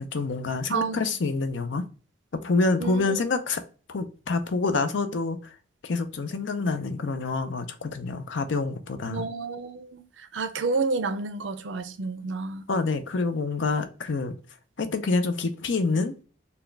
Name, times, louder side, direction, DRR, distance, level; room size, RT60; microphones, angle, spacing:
voice 1, 0.0-1.8 2.3-3.6 3.9-5.5 5.8-9.3 12.7-14.4 14.8-16.2, left 3 dB, 80° left, 0.6 m, -27 dB
voice 2, 0.7-1.0 2.8-3.2 9.1-12.6, right 4 dB, 85° right, 0.5 m, -30 dB
4.2 x 2.3 x 3.3 m
head